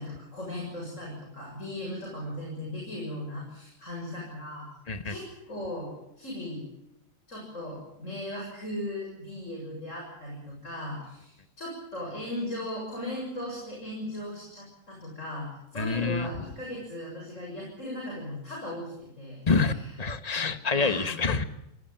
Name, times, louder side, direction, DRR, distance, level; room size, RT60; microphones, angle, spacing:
voice 1, 0.0-4.7 5.0-6.6 7.3-19.8 20.7-21.1, left 1 dB, 40° left, -1 dB, 7.6 m, -37 dB
voice 2, 15.8-16.3 19.5-21.4, left 4 dB, 20° left, 9 dB, 1.4 m, -27 dB
26.5 x 19.0 x 9.2 m, 0.85 s
omnidirectional pair, 2.1 m